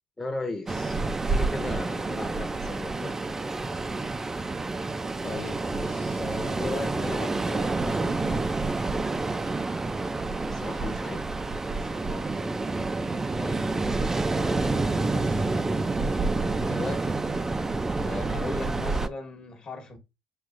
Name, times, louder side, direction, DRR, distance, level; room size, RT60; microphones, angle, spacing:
voice 1, 0.2-3.2 10.4-11.4 11.7-12.3, left 2 dB, 15° left, 0.7 m, -37 dB
Ocean, 0.7-19.1, right 3 dB, 15° right, 0.3 m, -28 dB
voice 2, 5.2-8.5 13.4-14.8 15.1-15.5 16.6-17.2 18.0-20.0, left 2 dB, 40° left, 1.1 m, -38 dB
6.0 x 2.4 x 2.5 m
cardioid pair, 105°, 3 cm